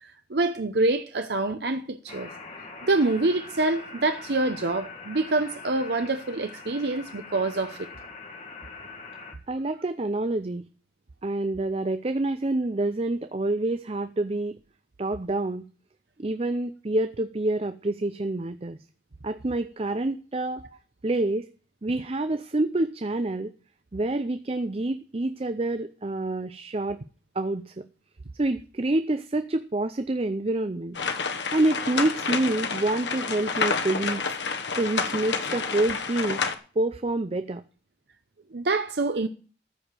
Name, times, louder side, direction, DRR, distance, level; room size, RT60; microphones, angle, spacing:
voice 1, 0.0-2.3 2.8-7.9 38.5-39.3, right 2 dB, 70° right, 0.8 m, -26 dB
sound 1, 2.1-9.3, left 4 dB, 35° left, 1.9 m, -43 dB
voice 2, 9.5-10.7 11.2-14.6 15.0-15.6 16.2-18.8 19.2-20.6 21.0-21.5 21.8-23.5 23.9-27.0 27.4-27.7 28.4-31.0 31.5-34.2 34.7-36.4 36.8-37.6, right 2 dB, 35° right, 0.5 m, -27 dB
sound 2, 30.9-36.5, left 5 dB, 90° left, 1.4 m, -29 dB
14.0 x 5.0 x 9.0 m
head